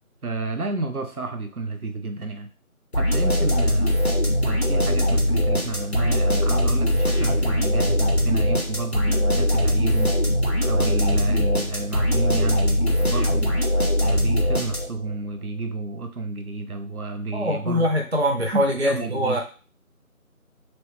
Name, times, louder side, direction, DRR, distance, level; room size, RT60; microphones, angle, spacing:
voice 1, 0.2-2.5 2.9-4.0 4.4-10.1 10.7-13.6 14.0-17.9 18.5-19.4, right 3 dB, 85° right, 6 dB, 0.8 m, -30 dB
sound 1, 2.9-15.1, left 1 dB, 45° left, 1.0 m, -21 dB
voice 2, 17.3-19.4, equal, 50° right, 1 dB, 0.5 m, -23 dB
3.1 x 3.0 x 3.1 m, 0.37 s
figure-of-eight pair, 175°, 43 cm